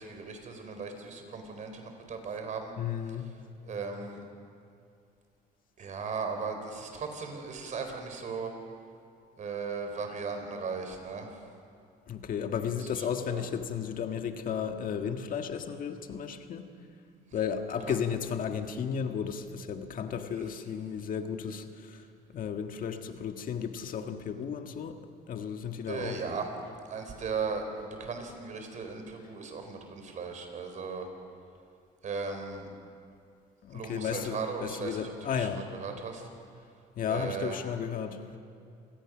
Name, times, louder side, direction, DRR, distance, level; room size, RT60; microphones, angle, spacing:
voice 1, 0.0-2.7 3.6-4.2 5.8-8.5 9.4-11.4 13.0-13.5 17.9-18.0 25.9-26.5 26.8-31.1 32.0-32.7 33.7-36.3 37.1-37.6, right 5 dB, 45° right, 5 dB, 4.1 m, -37 dB
voice 2, 2.8-3.3 12.1-16.7 17.3-22.0 22.3-25.0 25.3-26.2 33.6-35.6 36.9-38.2, left 7 dB, 55° left, 6 dB, 1.6 m, -34 dB
28.0 x 18.5 x 6.2 m, 2.4 s
cardioid pair, 110°, 17 cm